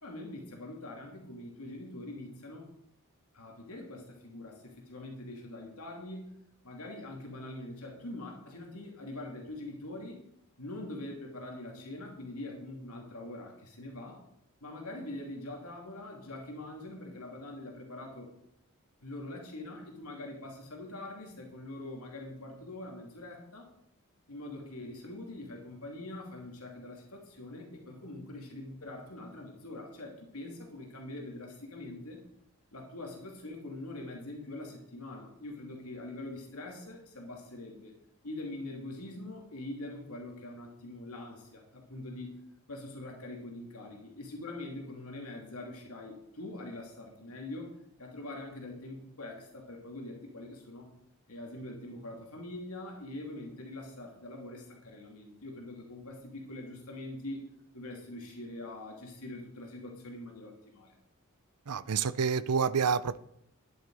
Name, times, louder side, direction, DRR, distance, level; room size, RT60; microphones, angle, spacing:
voice 1, 0.0-2.7 3.3-6.2 6.6-10.2 10.6-14.2 14.6-18.3 19.0-23.7 24.3-32.2 32.7-37.9 38.2-42.3 42.7-50.9 51.3-57.5 57.7-60.9, left 2 dB, 70° left, 2.7 m, -43 dB
voice 2, 61.7-63.2, right 6 dB, 85° right, 0.6 m, -28 dB
13.0 x 10.5 x 4.8 m
head